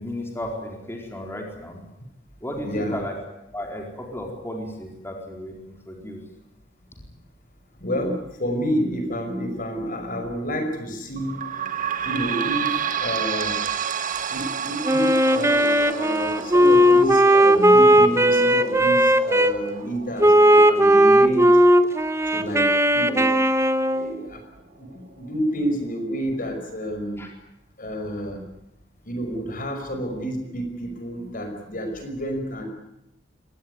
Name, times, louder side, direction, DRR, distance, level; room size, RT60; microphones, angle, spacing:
voice 1, 0.0-1.8 2.4-3.2 3.5-6.2 27.2-27.3, left 1 dB, 15° left, 0 dB, 4.5 m, -34 dB
voice 2, 2.6-3.0 7.8-11.4 12.0-13.6 14.3-21.5 22.3-23.3 23.9-24.4 24.8-24.9 25.2-27.3 27.8-28.4 29.0-32.6, equal, 50° left, 6 dB, 5.5 m, -29 dB
sound 1, 11.2-24.3 24.9-25.0 25.3-25.4 26.2-26.3, right 8 dB, 45° right, 1.5 m, -32 dB
Wind instrument woodwind instrument, 14.8-19.5 20.2-24.1, equal, 15° right, 1.3 m, -17 dB
24.0 x 19.0 x 9.6 m, 0.89 s
head